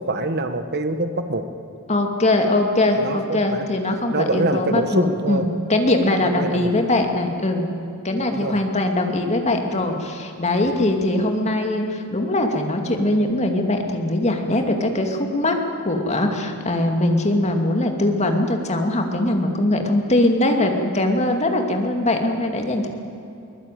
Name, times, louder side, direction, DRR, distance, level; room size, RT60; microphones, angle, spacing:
voice 1, 0.0-1.4 3.0-5.4 6.2-6.7 8.3-8.6, right 2 dB, 45° right, 9 dB, 1.4 m, -25 dB
voice 2, 1.9-7.7 8.0-15.6 15.8-22.9, left 1 dB, 30° left, 4 dB, 2.5 m, -21 dB
23.0 x 21.5 x 9.3 m, 2.7 s
head